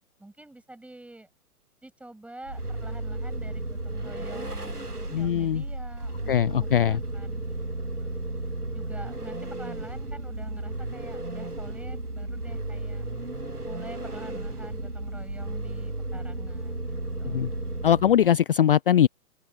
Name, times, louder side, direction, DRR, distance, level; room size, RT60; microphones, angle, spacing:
voice 1, 0.2-1.3 1.8-7.5 8.0-8.1 8.7-13.0 13.6-17.6, right 1 dB, 5° right, 7.6 m, -47 dB
Vehicle, 2.4-18.4, right 2 dB, 90° right, 1.9 m, -34 dB
voice 2, 5.1-5.6 6.3-7.0 17.2-17.5 17.8-19.1, left 10 dB, 40° left, 0.6 m, -21 dB
open air
figure-of-eight pair, 120°, 45 cm